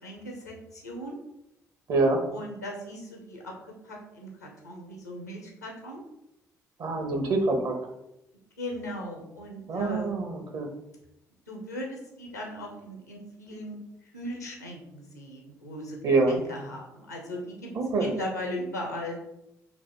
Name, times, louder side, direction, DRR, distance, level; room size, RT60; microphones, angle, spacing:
voice 1, 0.0-1.2 2.3-6.0 8.6-10.1 11.5-13.8 14.1-16.0 16.3-19.2, equal, 85° left, 1 dB, 0.6 m, -38 dB
voice 2, 1.9-2.2 6.8-7.7 9.7-10.7 16.0-16.4 17.7-18.1, right 3 dB, 50° right, 4 dB, 0.8 m, -25 dB
3.3 x 2.5 x 4.3 m, 0.85 s
figure-of-eight pair, 40°, 8 cm